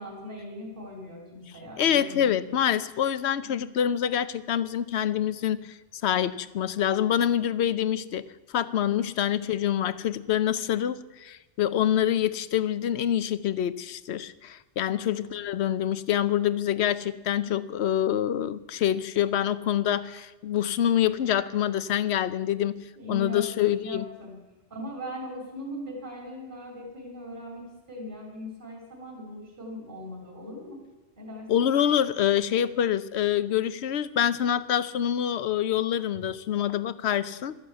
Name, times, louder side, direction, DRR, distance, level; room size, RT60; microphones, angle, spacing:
voice 1, 0.0-2.6 3.4-3.7 14.9-15.4 17.3-17.7 23.0-24.4 24.7-30.8 31.2-31.5, equal, 45° right, -1 dB, 3.5 m, -40 dB
voice 2, 1.8-24.1 31.5-37.5, left 10 dB, 70° left, 15 dB, 0.9 m, -26 dB
13.0 x 11.0 x 8.0 m, 1.1 s
omnidirectional pair, 1.2 m